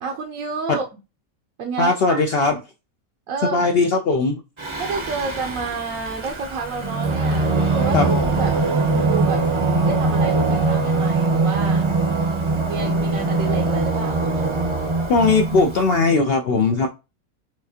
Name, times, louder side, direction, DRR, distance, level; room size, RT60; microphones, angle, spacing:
voice 1, 0.0-0.8 1.6-2.2 3.3-3.7 4.8-8.0 8.4-8.6 8.9-9.5 9.9-11.8 12.7-14.3, right 4 dB, 75° right, 1.1 m, -30 dB
voice 2, 1.8-2.5 3.5-4.4 7.9-8.1 15.1-16.9, left 3 dB, 70° left, 0.6 m, -18 dB
Singing, 4.6-15.9, right 3 dB, 30° right, 0.6 m, -22 dB
4.8 x 3.3 x 2.7 m
omnidirectional pair, 1.5 m